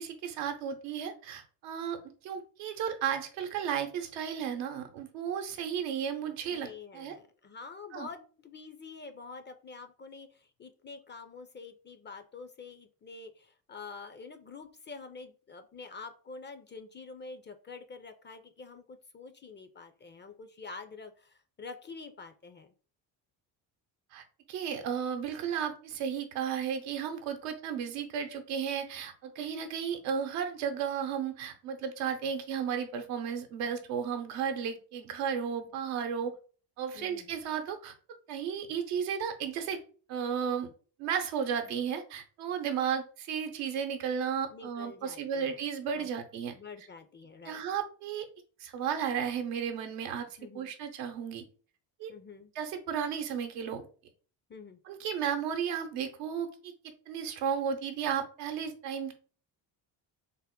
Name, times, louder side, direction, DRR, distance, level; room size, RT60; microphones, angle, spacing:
voice 1, 0.0-6.7 6.9-7.1 7.9-8.1 24.1-36.3 36.8-37.9 38.3-39.8 40.1-40.7 41.0-46.5 47.5-48.3 48.6-50.3 50.5-51.5 52.0-52.1 52.6-53.8 54.9-59.1, right 7 dB, 85° right, 6 dB, 0.8 m, -34 dB
voice 2, 6.5-22.7 36.9-37.3 44.5-45.6 45.9-46.1 46.5-47.6 50.4-50.7 52.1-52.5 54.5-54.8, left 4 dB, 25° left, 8 dB, 0.4 m, -47 dB
3.5 x 2.1 x 3.6 m, 0.39 s
supercardioid pair, 65°, 49 cm